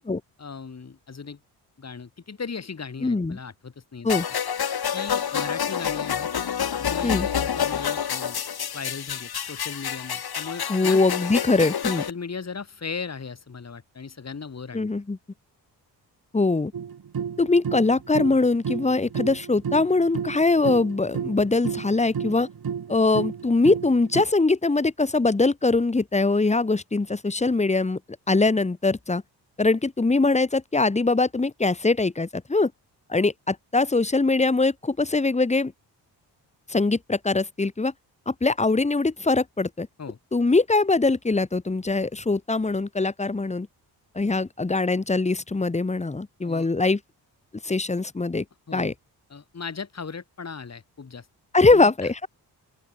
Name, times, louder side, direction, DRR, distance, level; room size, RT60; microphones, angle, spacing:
voice 1, 0.4-1.4 1.8-4.2 4.9-6.3 6.8-8.4 8.7-11.0 12.0-14.9 40.0-40.2 46.4-46.7 48.7-48.9 49.3-51.3 51.7-52.1, left 5 dB, 35° left, 3.0 m, -37 dB
voice 2, 3.0-3.4 4.0-4.3 7.0-7.3 10.7-12.0 14.7-15.2 16.3-16.7 17.4-22.5 22.9-28.0 28.3-29.2 29.6-32.7 33.1-35.7 36.7-37.9 38.3-39.9 40.3-43.7 44.1-47.0 47.6-48.4 48.7-48.9 51.5-52.3, left 3 dB, 15° left, 1.2 m, -22 dB
sound 1, 4.1-12.1, left 8 dB, 60° left, 2.8 m, -28 dB
sound 2, 16.7-24.2, right 7 dB, 55° right, 4.2 m, -32 dB
open air
cardioid pair, 60°, 43 cm